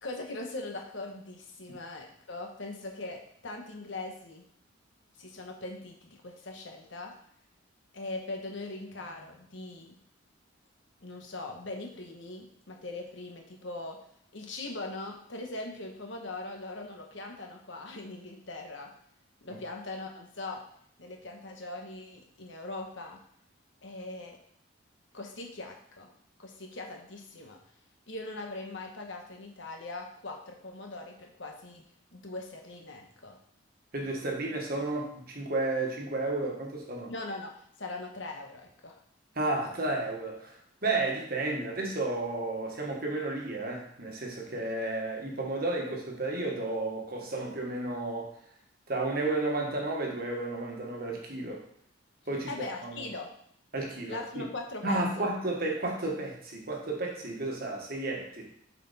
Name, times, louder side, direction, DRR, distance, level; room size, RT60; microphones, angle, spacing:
voice 1, 0.0-4.4 5.2-7.1 7.9-10.0 11.0-14.0 14.3-18.9 19.4-20.6 21.0-23.2 23.8-24.4 25.1-26.1 26.4-27.6 28.1-31.8 32.1-33.4 37.1-37.5 37.8-39.0 52.5-53.3 54.1-55.3, left 2 dB, 65° left, 2 dB, 1.1 m, -40 dB
voice 2, 33.9-37.1 39.3-48.3 48.9-51.6 52.3-52.5 52.8-53.0 53.7-54.5 54.8-58.5, right 2 dB, 45° right, 0 dB, 1.4 m, -32 dB
7.2 x 4.5 x 4.2 m, 0.66 s
head